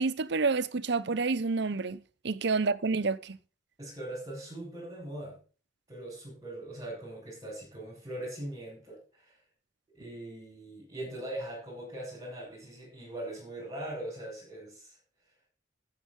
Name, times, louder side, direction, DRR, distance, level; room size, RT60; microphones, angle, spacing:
voice 1, 0.0-3.4, right 4 dB, 65° right, 0.7 m, -29 dB
voice 2, 3.8-5.4 5.9-9.4 9.9-15.0, right 1 dB, 20° right, 6.5 m, -41 dB
13.5 x 7.5 x 5.4 m
head